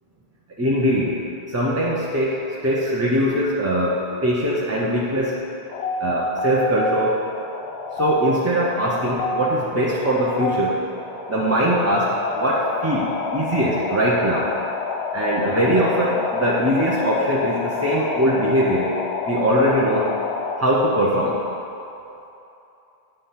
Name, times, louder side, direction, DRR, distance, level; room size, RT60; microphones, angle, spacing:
voice 1, 0.6-1.2 1.5-5.4 6.0-7.2 8.0-10.7 11.3-14.5 15.1-18.9 19.3-20.1 20.6-21.4, equal, 20° right, -6 dB, 0.5 m, -21 dB
sound 1, 5.7-20.6, left 3 dB, 85° left, 0.8 m, -28 dB
8.8 x 3.4 x 5.6 m, 2.9 s
omnidirectional pair, 1.1 m